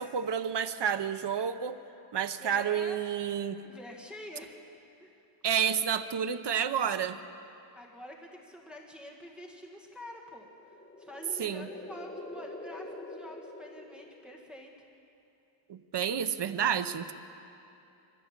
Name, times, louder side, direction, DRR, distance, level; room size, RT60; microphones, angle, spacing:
voice 1, 0.0-1.8 2.1-3.6 5.4-7.2 11.4-11.7 15.7-17.1, right 8 dB, 55° right, 11 dB, 0.9 m, -30 dB
voice 2, 2.4-3.0 3.6-4.6 5.0-5.2 7.8-14.9, left 1 dB, ahead, -1 dB, 1.8 m, -47 dB
sound 1, 10.4-14.6, left 2 dB, 20° left, 1.2 m, -45 dB
23.5 x 15.5 x 7.4 m, 2.8 s
wide cardioid pair, 135°, 50 cm